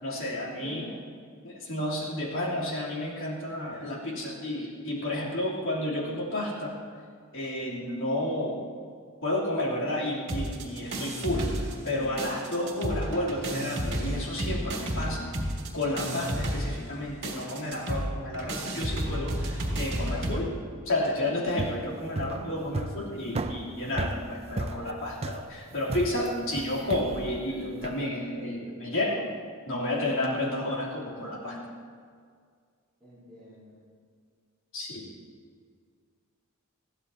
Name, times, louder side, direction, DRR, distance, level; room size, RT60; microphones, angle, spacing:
voice 1, 0.0-0.9 1.4-6.8 7.3-8.6 9.2-11.6 11.8-15.3 15.7-20.5 20.8-29.2 29.7-31.7 34.7-35.1, left 1 dB, 60° left, -5 dB, 3.3 m, -31 dB
voice 2, 0.6-0.9 33.0-33.9, left 2 dB, 5° left, -11 dB, 4.3 m, -47 dB
sound 1, 10.3-11.9 12.2-20.4, right 1 dB, 55° right, 2.5 m, -32 dB
sound 2, 21.5-28.0, right 2 dB, 30° right, 0.5 m, -35 dB
21.0 x 15.0 x 2.9 m, 2.1 s
head